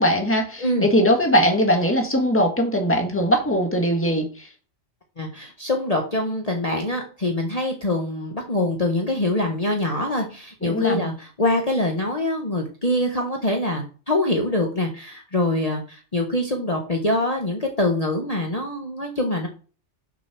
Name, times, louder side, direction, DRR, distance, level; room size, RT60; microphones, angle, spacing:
voice 1, 0.0-4.5 10.6-11.1, equal, 10° left, 3 dB, 1.8 m, -20 dB
voice 2, 5.2-19.5, left 1 dB, 30° left, 1 dB, 1.5 m, -24 dB
6.8 x 6.4 x 6.2 m, 0.37 s
omnidirectional pair, 1.3 m